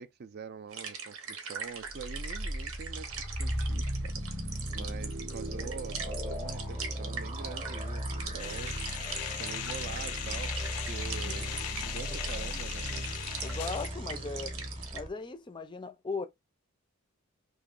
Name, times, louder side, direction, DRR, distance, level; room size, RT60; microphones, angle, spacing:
voice 1, 0.0-9.0 9.4-10.5 10.8-12.9, right 6 dB, 45° right, 0.4 m, -45 dB
sound 1, 0.7-15.0, right 6 dB, 75° right, 0.9 m, -42 dB
sound 2, 1.8-15.1, equal, 25° right, 0.8 m, -37 dB
sound 3, 8.4-13.9, left 12 dB, 85° left, 0.3 m, -39 dB
voice 2, 11.2-11.5 13.4-14.6 14.9-16.3, left 3 dB, 20° left, 0.4 m, -38 dB
3.0 x 2.6 x 3.8 m
head